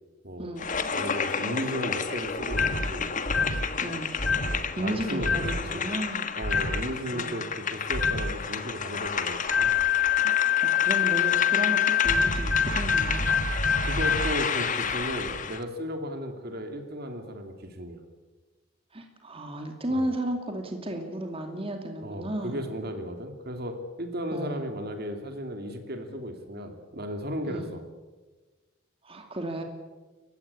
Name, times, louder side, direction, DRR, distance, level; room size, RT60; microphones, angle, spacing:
sound 1, 0.6-15.6, left 6 dB, 40° left, 1.5 m, -31 dB
voice 1, 0.9-3.1 4.4-5.9 6.3-9.7 13.8-18.0 19.9-20.1 22.0-27.8, equal, 50° right, 6 dB, 2.8 m, -35 dB
sound 2, 2.5-2.9 3.3-3.6 4.2-4.6 5.2-5.6 6.4-6.8 7.9-8.3 9.5-14.3, left 6 dB, 70° left, 3.5 m, -25 dB
voice 2, 4.8-6.3 7.1-7.4 10.2-10.3 10.6-13.3 18.9-22.6 24.3-24.6 27.5-27.7 29.0-29.6, right 1 dB, 30° right, 4 dB, 2.6 m, -33 dB
30.0 x 16.0 x 8.6 m, 1.3 s
head